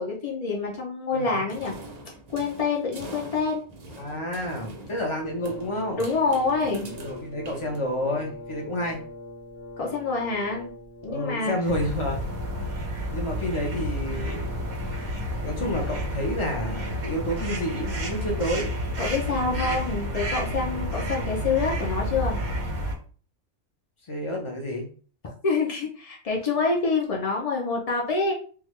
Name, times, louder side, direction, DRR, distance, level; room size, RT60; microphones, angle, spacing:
voice 1, 0.0-1.7 2.3-3.6 6.0-6.9 9.8-10.7 11.0-11.5 15.5-15.8 19.0-22.4 25.4-28.3, left 4 dB, 65° left, -1 dB, 0.3 m, -26 dB
voice 2, 1.1-1.4 3.9-6.0 7.0-9.0 11.1-12.2 13.1-14.5 15.4-18.7 20.4-20.6 24.1-24.9, equal, 30° left, 0 dB, 0.7 m, -30 dB
sound 1, 1.5-8.2, right 2 dB, 65° right, 0.4 m, -44 dB
Brass instrument, 5.2-23.0, left 2 dB, 85° left, 1.1 m, -43 dB
Maksimir pond, 11.6-22.9, equal, 40° right, 0.7 m, -30 dB
3.5 x 2.3 x 3.1 m, 0.41 s
omnidirectional pair, 1.5 m